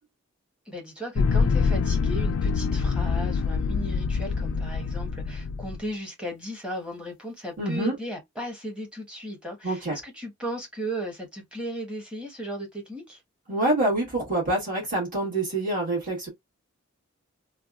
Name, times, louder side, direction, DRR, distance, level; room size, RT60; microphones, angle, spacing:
voice 1, 0.7-13.2, equal, 5° right, 1.0 m, -36 dB
sound 1, 1.2-5.8, left 5 dB, 80° left, 0.4 m, -25 dB
voice 2, 7.6-7.9 9.6-10.0 13.5-16.3, right 2 dB, 40° right, 1.6 m, -26 dB
3.3 x 2.2 x 2.3 m
head